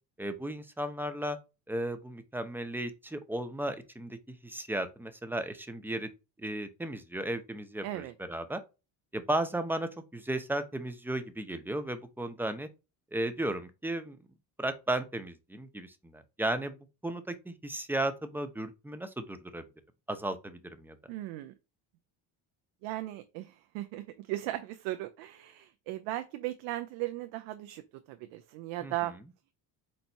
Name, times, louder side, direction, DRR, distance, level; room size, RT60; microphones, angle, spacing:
voice 1, 0.2-1.4 1.7-6.1 6.4-8.6 9.1-12.7 13.1-14.2 14.6-16.8 17.0-19.6 20.1-21.0 28.8-28.9, right 1 dB, 5° right, 0.7 m, -35 dB
voice 2, 7.8-8.1 21.1-21.5 22.8-29.1, right 16 dB, 90° right, 0.6 m, -37 dB
4.3 x 2.6 x 4.5 m
supercardioid pair, 90°, 44 cm